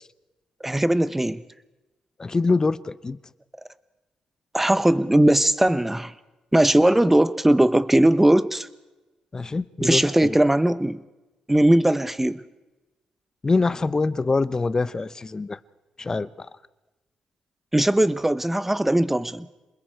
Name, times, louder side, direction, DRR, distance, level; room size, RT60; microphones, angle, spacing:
voice 1, 0.6-1.4 4.5-6.1 6.5-8.7 9.8-11.0 11.5-12.4 17.7-19.5, right 1 dB, 10° right, 15 dB, 0.9 m, -19 dB
voice 2, 2.2-3.2 9.3-10.4 13.4-15.6 16.0-16.5, left 3 dB, 30° left, 17 dB, 0.8 m, -24 dB
27.5 x 21.0 x 4.7 m, 1.1 s
cardioid pair, 80°, 2 cm